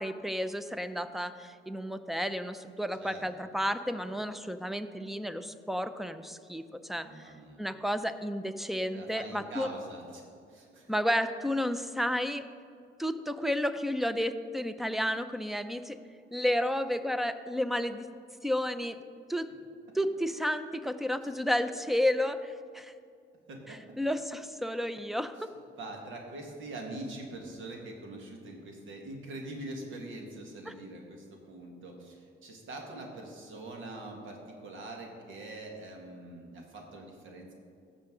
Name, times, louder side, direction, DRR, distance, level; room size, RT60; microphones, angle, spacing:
voice 1, 0.0-7.3 7.6-9.7 10.9-12.5 13.0-16.0 16.3-18.1 18.4-19.0 19.3-19.5 19.9-22.9 23.7-25.5 30.7-30.8, equal, ahead, 11 dB, 0.5 m, -32 dB
voice 2, 7.0-7.6 8.9-10.2 10.5-10.9 23.5-23.8 25.8-32.2 32.4-37.5, right 2 dB, 75° right, 1 dB, 1.9 m, -43 dB
15.5 x 6.6 x 3.8 m, 2.4 s
cardioid pair, 90°, 20 cm